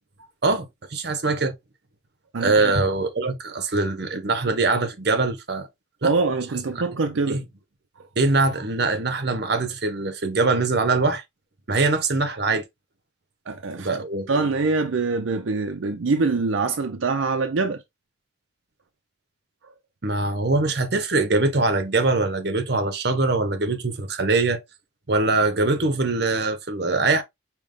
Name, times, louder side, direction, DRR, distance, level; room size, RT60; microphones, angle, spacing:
voice 1, 0.4-1.5 2.4-5.7 6.0-6.1 7.3-7.4 8.2-11.2 11.7-12.6 13.8-14.3 20.0-24.6 25.1-27.2, right 3 dB, 55° right, 0.9 m, -22 dB
voice 2, 6.0-7.4 8.0-8.1 13.5-17.8, right 3 dB, 75° right, 0.6 m, -24 dB
5.2 x 3.0 x 3.4 m
head